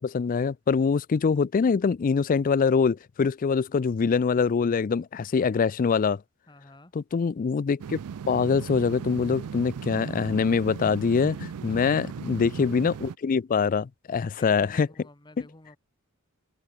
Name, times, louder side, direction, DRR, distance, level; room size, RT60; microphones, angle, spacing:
voice 1, 0.0-6.2 6.9-8.0 8.3-14.9, left 5 dB, 40° left, 0.3 m, -24 dB
voice 2, 6.5-6.9 11.7-12.1 14.4-15.8, left 1 dB, 20° left, 1.8 m, -48 dB
sound 1, 7.8-13.1, right 7 dB, 85° right, 0.4 m, -37 dB
open air
head